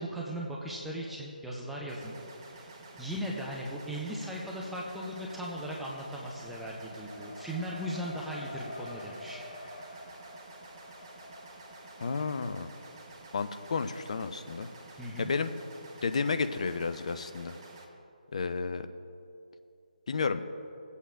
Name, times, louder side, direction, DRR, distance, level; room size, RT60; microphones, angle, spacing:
voice 1, 0.0-2.2 2.5-2.7 3.0-9.4 15.0-15.3, equal, ahead, -4 dB, 0.6 m, -38 dB
sound 1, 1.9-17.8, right 3 dB, 30° right, 1.0 m, -51 dB
Race car auto racing, 2.5-3.3 3.6-15.0, left 1 dB, 65° left, 1.2 m, -49 dB
voice 2, 12.0-12.7 13.3-14.7 15.2-15.5 16.0-17.5 18.3-18.9 20.1-20.4, left 4 dB, 50° left, 10 dB, 0.5 m, -31 dB
19.5 x 8.2 x 2.5 m, 2.6 s
figure-of-eight pair, 145°, 5 cm